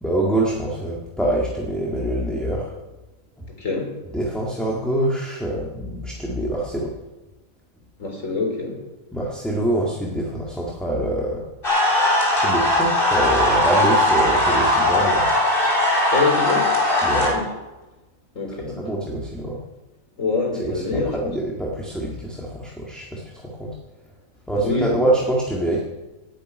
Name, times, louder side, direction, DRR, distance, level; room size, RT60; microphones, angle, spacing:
voice 1, 0.0-2.8 4.1-6.9 9.1-11.4 12.4-15.3 17.0-17.3 18.8-19.6 20.6-23.7 24.5-25.8, right 1 dB, ahead, -3 dB, 1.8 m, -25 dB
voice 2, 3.5-3.9 8.0-8.8 16.1-16.7 17.3-17.5 18.4-18.8 20.2-21.2 24.5-25.0, left 3 dB, 65° left, 2 dB, 3.7 m, -25 dB
sound 1, 11.6-17.3, left 1 dB, 40° left, 4.0 m, -19 dB
10.5 x 9.9 x 9.2 m, 1.1 s
omnidirectional pair, 1.4 m